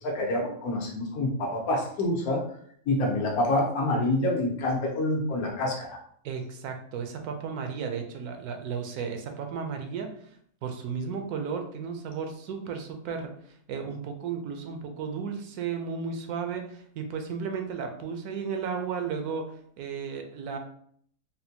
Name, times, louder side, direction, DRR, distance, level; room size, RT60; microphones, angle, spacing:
voice 1, 0.0-2.4 2.9-6.0, left 1 dB, 70° left, 0 dB, 1.3 m, -27 dB
voice 2, 6.2-10.1 10.6-13.3 13.7-19.5 19.8-20.6, right 6 dB, 80° right, 5 dB, 1.1 m, -34 dB
4.1 x 2.2 x 2.8 m, 0.63 s
omnidirectional pair, 1.6 m